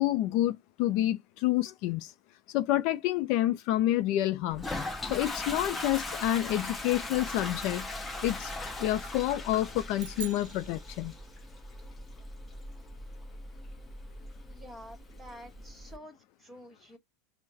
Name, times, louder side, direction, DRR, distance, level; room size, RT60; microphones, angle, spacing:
voice 1, 0.0-2.1 2.5-4.7 5.1-7.9 8.2-8.5 8.8-11.1, left 14 dB, 55° left, 0.4 m, -28 dB
Toilet flush, 4.5-15.9, left 2 dB, 15° left, 0.9 m, -39 dB
sound 1, 10.0-11.6, right 11 dB, 85° right, 0.4 m, -45 dB
voice 2, 14.5-17.0, equal, 10° right, 1.7 m, -49 dB
5.5 x 2.1 x 2.8 m
supercardioid pair, 115°, 0 cm